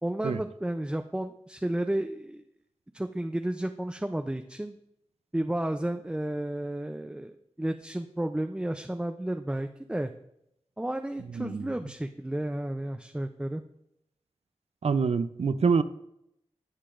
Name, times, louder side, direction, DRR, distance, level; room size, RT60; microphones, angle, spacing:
voice 1, 0.0-2.4 2.9-4.8 5.3-10.1 10.8-13.6, right 1 dB, 10° right, 0.4 m, -32 dB
voice 2, 11.3-11.7 14.8-15.8, right 5 dB, 65° right, 0.5 m, -26 dB
16.5 x 5.7 x 2.5 m
cardioid pair, 50°, 12 cm